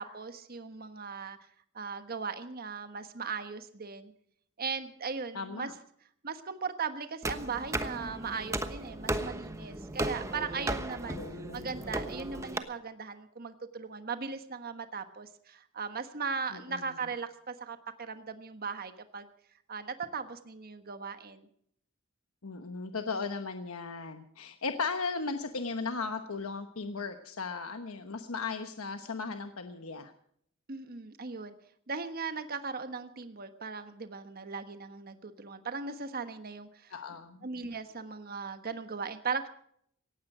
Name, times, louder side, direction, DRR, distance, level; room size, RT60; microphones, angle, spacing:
voice 1, 0.0-1.4 1.7-4.1 4.6-5.7 6.2-11.2 11.5-19.3 19.7-21.5 30.7-31.5 31.9-36.9 37.4-39.5, right 5 dB, 45° right, 9 dB, 1.3 m, -38 dB
voice 2, 5.3-5.7 11.1-11.8 16.5-16.8 22.4-30.1 36.9-37.4, left 4 dB, 85° left, 7 dB, 1.1 m, -36 dB
sound 1, 7.2-12.6, right 1 dB, 15° right, 1.1 m, -36 dB
18.0 x 15.5 x 5.0 m, 0.66 s
head